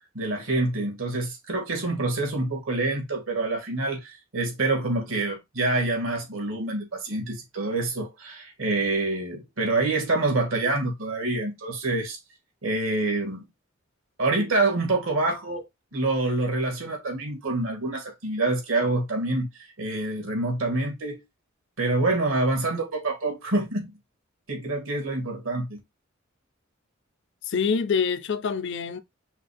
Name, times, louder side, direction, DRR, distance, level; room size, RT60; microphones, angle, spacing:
voice 1, 0.1-12.2 12.6-13.4 14.2-15.7 15.9-21.2 21.8-23.9 24.5-25.8, right 2 dB, 90° right, 2.0 m, -26 dB
voice 2, 27.4-29.0, left 6 dB, 60° left, 0.5 m, -26 dB
5.6 x 2.4 x 3.4 m
head